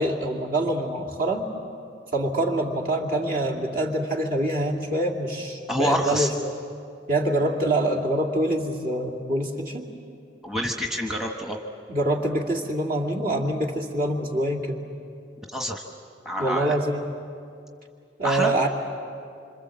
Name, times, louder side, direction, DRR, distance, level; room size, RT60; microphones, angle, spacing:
voice 1, 0.0-1.5 2.1-6.5 7.1-9.9 11.9-14.8 16.4-17.0 18.2-18.7, right 1 dB, 50° right, 0 dB, 2.5 m, -25 dB
voice 2, 5.7-6.3 10.4-11.6 15.5-15.8 16.2-16.7 18.2-18.5, equal, 5° right, 2 dB, 1.2 m, -26 dB
26.5 x 26.0 x 7.5 m, 2.4 s
head